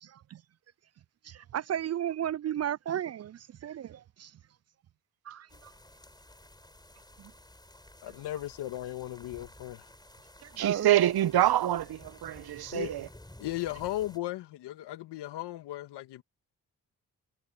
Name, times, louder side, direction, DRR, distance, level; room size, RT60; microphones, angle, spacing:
voice 1, 0.0-0.4 1.2-4.3 5.3-5.7 7.2-7.3 10.4-10.9, right 10 dB, 40° right, 0.4 m, -34 dB
sound 1, 5.5-14.2, left 1 dB, 10° left, 4.1 m, -53 dB
voice 2, 8.0-9.9 12.7-13.0 13.4-16.2, left 14 dB, 80° left, 2.0 m, -36 dB
voice 3, 10.6-13.1, right 13 dB, 65° right, 1.0 m, -26 dB
hypercardioid pair, 45°, 40 cm